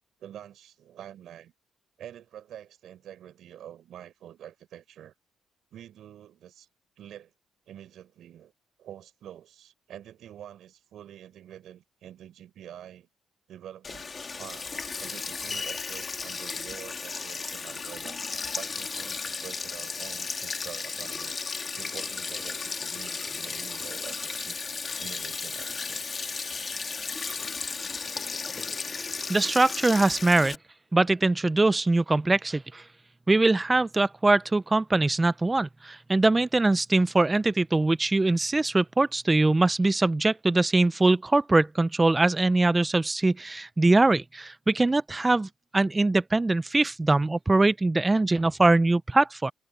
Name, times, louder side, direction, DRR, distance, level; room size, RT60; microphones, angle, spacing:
voice 1, 0.2-1.5 2.0-5.1 5.7-6.7 7.0-7.3 7.7-8.5 8.8-13.1 13.5-14.1 14.4-18.2 18.5-21.4 21.8-26.1, right 10 dB, 70° right, 5.7 m, -46 dB
Sink (filling or washing), 13.8-30.6, left 4 dB, 35° left, 3.1 m, -34 dB
voice 2, 29.3-30.6 30.9-32.8 33.3-45.5 45.7-49.5, right 2 dB, 20° right, 0.6 m, -22 dB
cardioid pair, 90°, 0 cm